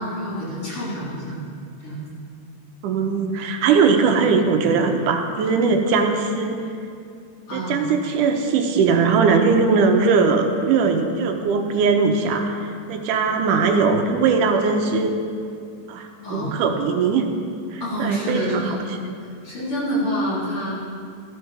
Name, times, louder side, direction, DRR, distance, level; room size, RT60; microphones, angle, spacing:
voice 1, 0.0-1.4 1.8-2.0 7.5-7.8 16.2-16.5 17.8-18.8 19.4-20.7, equal, 45° left, -8 dB, 4.3 m, -27 dB
voice 2, 2.8-6.6 7.5-15.1 15.9-17.2 17.7-18.8, right 5 dB, 80° right, 4 dB, 2.4 m, -20 dB
14.5 x 13.0 x 3.4 m, 2.4 s
omnidirectional pair, 3.6 m